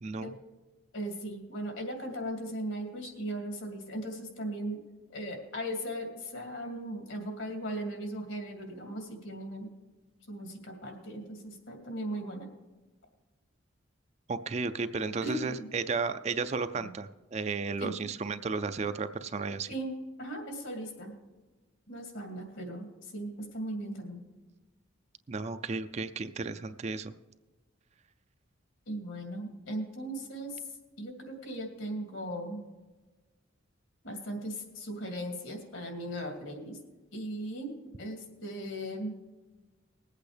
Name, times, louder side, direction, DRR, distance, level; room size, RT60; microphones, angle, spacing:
voice 1, 0.0-0.3 14.3-19.7 25.3-27.1, right 4 dB, 35° right, 11 dB, 0.4 m, -33 dB
voice 2, 0.9-4.8 5.1-9.7 10.3-12.5 15.2-15.7 16.8-16.9 17.8-17.9 19.7-21.1 21.9-24.3 28.9-30.6 31.0-32.6 34.0-36.8 37.1-39.2, right 1 dB, 75° left, 3 dB, 2.4 m, -38 dB
20.5 x 8.4 x 3.4 m, 1.2 s
head